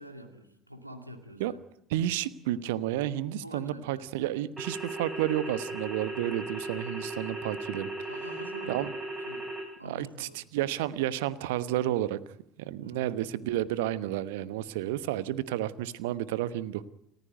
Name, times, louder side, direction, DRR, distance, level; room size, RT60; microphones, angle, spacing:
voice 1, 0.0-1.6 3.4-4.1 8.1-8.8 9.2-9.5 9.8-10.4 12.8-13.1, equal, 90° right, 6 dB, 2.4 m, -46 dB
voice 2, 1.9-7.9 8.7-8.9 9.8-12.2 12.6-16.9, right 13 dB, 65° right, 16 dB, 1.1 m, -31 dB
sound 1, 4.6-9.6, right 2 dB, 15° right, 7.6 m, -37 dB
29.5 x 15.0 x 9.3 m, 0.80 s
figure-of-eight pair, 65°, 0 cm